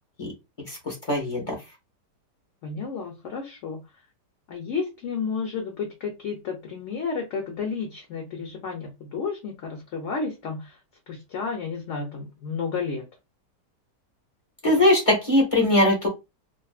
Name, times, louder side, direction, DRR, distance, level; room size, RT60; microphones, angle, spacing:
voice 1, 0.7-1.5 14.6-16.1, left 1 dB, 35° left, -1 dB, 0.5 m, -21 dB
voice 2, 2.6-3.8 4.5-10.8 11.1-13.0, left 5 dB, 65° left, 2 dB, 0.8 m, -32 dB
2.5 x 2.5 x 2.3 m, 0.25 s
omnidirectional pair, 1.8 m